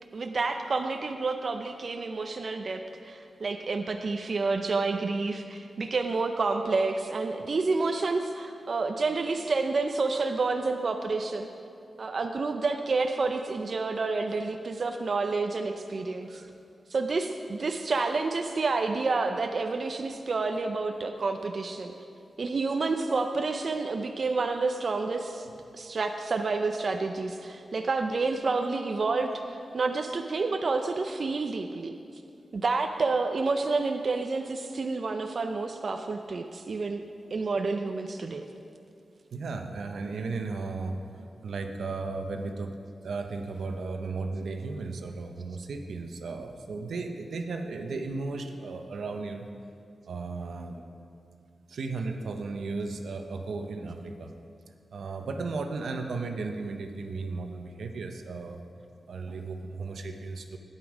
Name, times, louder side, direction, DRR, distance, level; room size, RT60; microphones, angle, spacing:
voice 1, 0.1-11.5 12.0-16.4 16.9-21.9 22.4-25.5 25.7-29.3 29.7-31.9 32.5-37.0 37.3-38.4, right 3 dB, 55° right, 5 dB, 0.5 m, -29 dB
voice 2, 39.3-41.0 41.4-42.8 43.0-49.5 50.1-50.9 51.7-54.3 54.9-58.6 59.1-60.6, right 3 dB, 85° right, 5 dB, 0.8 m, -35 dB
11.5 x 9.1 x 4.9 m, 2.5 s
wide cardioid pair, 95°, 0 cm